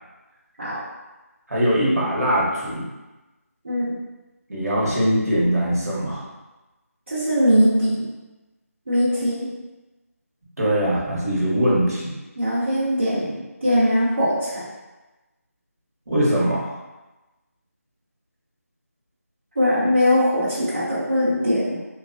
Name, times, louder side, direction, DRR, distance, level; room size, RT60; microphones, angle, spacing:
voice 1, 1.5-2.8 4.5-6.2 10.6-12.2 16.1-16.7, equal, 80° right, -6 dB, 1.0 m, -21 dB
voice 2, 7.1-8.1 8.9-9.5 12.4-14.7 19.6-21.8, equal, 45° right, -10 dB, 0.8 m, -21 dB
3.0 x 2.1 x 2.5 m, 1.1 s
figure-of-eight pair, 175°, 8 cm